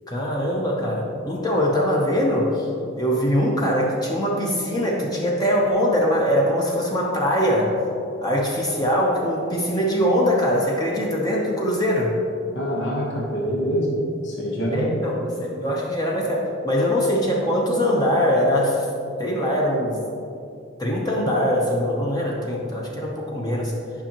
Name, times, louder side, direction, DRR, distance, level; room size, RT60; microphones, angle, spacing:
voice 1, 0.1-2.7 3.0-7.7 8.2-12.1 14.7-18.9 19.2-20.0 20.8-23.7, equal, 20° left, -3 dB, 0.8 m, -22 dB
voice 2, 12.5-13.9 14.2-15.0, equal, 65° left, -3 dB, 1.1 m, -25 dB
9.8 x 5.4 x 2.9 m, 2.6 s
head